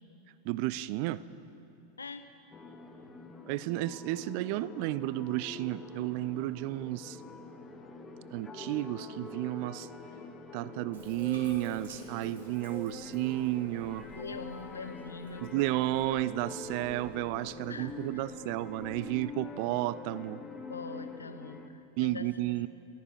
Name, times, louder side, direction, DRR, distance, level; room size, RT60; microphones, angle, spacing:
voice 1, 0.4-1.2 3.5-7.2 8.3-9.9 10.5-14.1 15.4-20.4 22.0-22.7, right 16 dB, 45° right, 18 dB, 0.3 m, -32 dB
voice 2, 2.0-2.3 14.1-15.5 17.7-18.2 20.6-22.3, left 4 dB, 75° left, 10 dB, 0.7 m, -43 dB
sound 1, 2.5-21.7, left 3 dB, 15° left, 0.9 m, -45 dB
Bathtub (filling or washing), 10.9-19.3, right 2 dB, 65° right, 2.1 m, -56 dB
14.5 x 12.0 x 4.9 m, 2.8 s
figure-of-eight pair, 90°, 0 cm